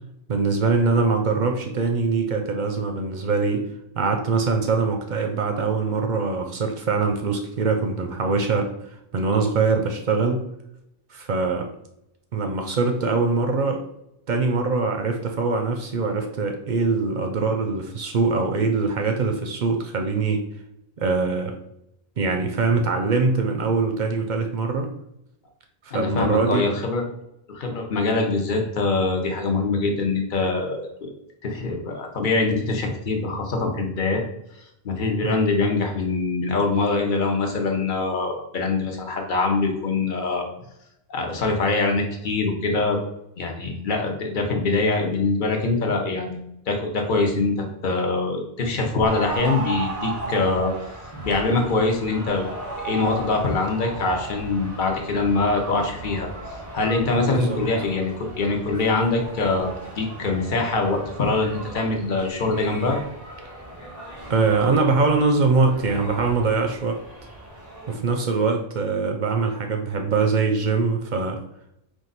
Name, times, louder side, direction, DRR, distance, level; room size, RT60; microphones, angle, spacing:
voice 1, 0.3-3.6 4.0-8.7 9.1-10.4 11.1-11.7 12.3-13.8 14.3-20.4 21.0-21.5 22.2-24.9 25.9-26.7 35.2-35.4 57.2-57.6 64.3-67.0 67.9-71.4, right 4 dB, 55° right, 4 dB, 0.6 m, -23 dB
voice 2, 25.9-27.0 27.5-31.1 31.4-34.2 34.6-40.5 41.1-43.0 43.4-50.7 51.2-52.5 52.8-63.0, left 3 dB, 50° left, 2 dB, 0.9 m, -24 dB
sound 1, 49.1-68.0, right 2 dB, 20° left, 0.9 m, -36 dB
4.5 x 2.5 x 4.0 m, 0.81 s
omnidirectional pair, 1.1 m